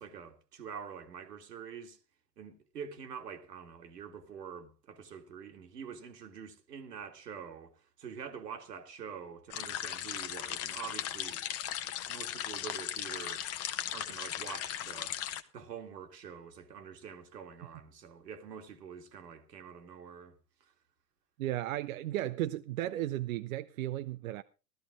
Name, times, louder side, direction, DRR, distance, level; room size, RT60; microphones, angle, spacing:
voice 1, 0.0-2.0 2.4-11.4 12.1-13.5 13.9-15.2 15.5-20.7, right 7 dB, 75° right, 2.1 m, -46 dB
sound 1, 9.5-15.4, left 11 dB, 30° left, 1.0 m, -37 dB
voice 2, 21.4-24.4, right 14 dB, 55° right, 0.7 m, -35 dB
14.5 x 13.0 x 3.6 m
figure-of-eight pair, 95°, 49 cm